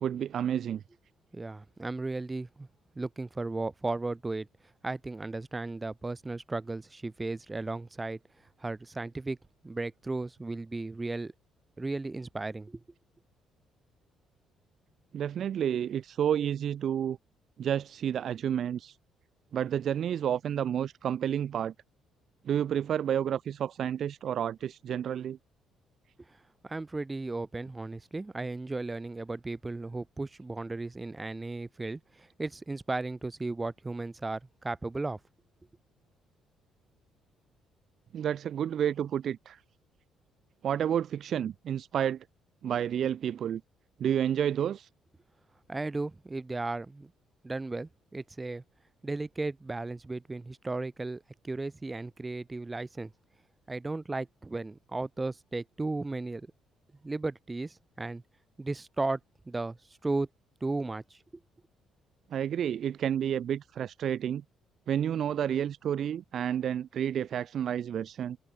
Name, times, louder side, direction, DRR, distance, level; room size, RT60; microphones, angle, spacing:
voice 1, 0.0-0.8 15.1-17.2 17.6-19.0 19.5-21.7 22.4-25.4 38.1-39.6 40.6-42.3 42.6-43.6 44.0-44.9 62.3-64.4 64.9-68.4, right 9 dB, 45° right, 0.4 m, -30 dB
voice 2, 1.3-2.7 3.0-4.5 4.8-8.2 8.6-9.4 9.6-11.3 11.8-12.8 26.6-35.2 45.7-47.1 47.4-48.6 49.0-53.1 53.7-56.5 57.0-58.2 58.6-59.2 59.5-59.8 60.0-60.3 60.6-61.2, right 2 dB, 10° right, 2.0 m, -35 dB
cardioid pair, 170°, 0 cm